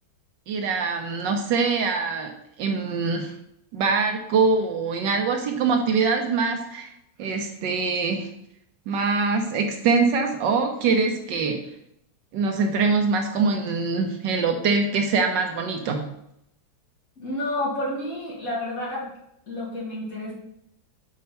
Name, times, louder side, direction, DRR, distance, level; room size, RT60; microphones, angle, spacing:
voice 1, 0.5-2.3 2.6-3.3 3.7-6.9 7.2-8.3 8.9-11.6 12.3-16.0, right 4 dB, 70° right, 4 dB, 1.3 m, -23 dB
voice 2, 17.2-19.1 19.5-20.3, left 1 dB, 45° left, -5 dB, 2.4 m, -30 dB
5.6 x 4.1 x 5.5 m, 0.78 s
omnidirectional pair, 2.2 m